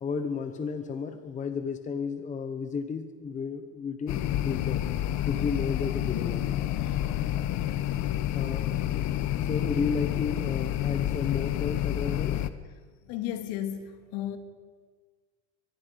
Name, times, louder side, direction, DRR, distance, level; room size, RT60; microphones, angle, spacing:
voice 1, 0.0-4.8 5.3-6.5 8.3-8.7 9.3-12.5, left 5 dB, 20° left, 8 dB, 1.0 m, -33 dB
sound 1, 4.1-12.5, left 12 dB, 45° left, 1.0 m, -29 dB
voice 2, 13.1-14.4, left 11 dB, 65° left, 7 dB, 2.5 m, -34 dB
23.5 x 22.0 x 5.2 m, 1.5 s
cardioid pair, 145°, 40 cm